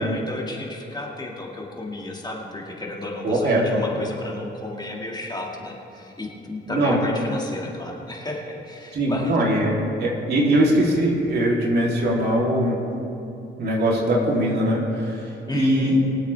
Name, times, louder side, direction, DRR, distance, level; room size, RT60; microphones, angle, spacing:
voice 1, 0.0-9.4 10.5-10.6 15.4-15.9, left 2 dB, 20° left, -1 dB, 2.0 m, -33 dB
voice 2, 3.2-3.8 6.7-7.0 8.9-12.8 13.6-15.2 15.5-16.0, right 1 dB, 55° right, -3 dB, 3.0 m, -21 dB
23.0 x 8.0 x 3.4 m, 2.8 s
cardioid pair, 90°, 20 cm